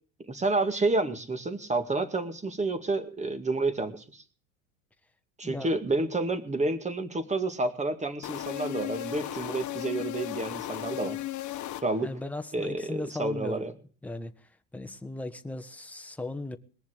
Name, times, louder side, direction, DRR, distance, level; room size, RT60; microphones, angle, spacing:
voice 1, 0.3-4.2 5.4-11.2 11.8-12.1 12.5-13.7, right 2 dB, 15° right, 2.1 m, -29 dB
voice 2, 5.4-5.8 12.0-13.7 14.0-14.3 14.7-16.6, left 2 dB, 5° left, 1.3 m, -37 dB
sound 1, 8.2-12.3, left 14 dB, 45° left, 1.3 m, -36 dB
20.5 x 7.2 x 8.1 m
hypercardioid pair, 85°, 41 cm